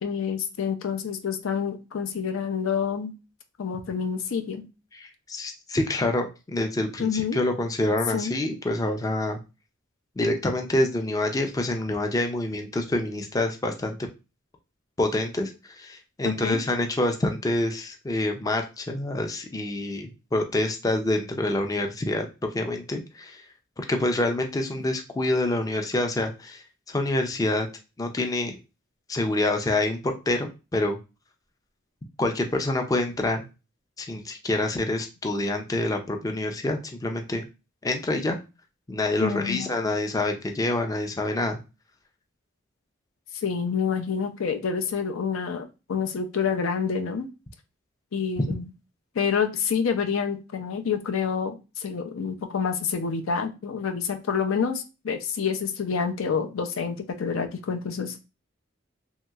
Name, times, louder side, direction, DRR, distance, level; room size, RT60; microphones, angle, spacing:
voice 1, 0.0-3.1 3.6-4.6 7.0-7.4 8.1-8.4 16.2-16.6 39.2-39.7 43.4-47.3 48.1-48.7 49.2-58.2, left 6 dB, 85° left, 7 dB, 0.5 m, -28 dB
voice 2, 4.9-9.4 10.2-14.1 15.0-23.4 23.8-27.7 28.0-28.6 29.1-31.0 32.2-33.5 34.0-37.5 37.8-38.4 38.9-41.6, left 1 dB, 15° left, 4 dB, 0.3 m, -27 dB
3.0 x 2.8 x 2.3 m, 0.28 s
head